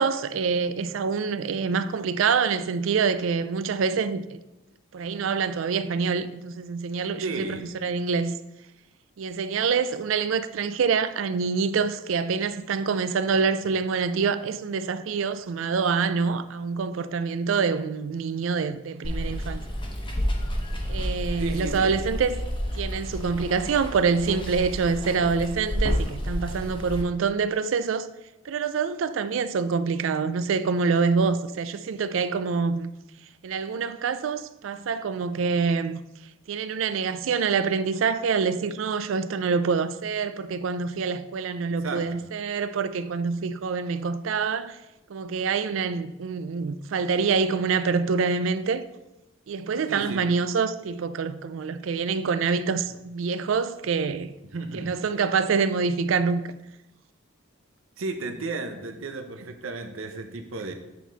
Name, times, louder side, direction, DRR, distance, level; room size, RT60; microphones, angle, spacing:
voice 1, 0.0-4.4 4.9-8.4 9.2-19.6 20.9-22.4 22.8-28.1 28.5-32.9 33.4-36.0 36.5-44.8 45.1-48.9 49.5-54.3 54.7-56.4, right 5 dB, 70° right, 0.4 m, -26 dB
voice 2, 7.2-7.7 21.4-22.0 41.8-42.2 49.9-50.3 54.5-55.0 58.0-60.7, right 3 dB, 90° right, 0.8 m, -33 dB
Water, 19.0-27.0, equal, 25° left, 1.1 m, -30 dB
8.2 x 4.3 x 4.0 m
head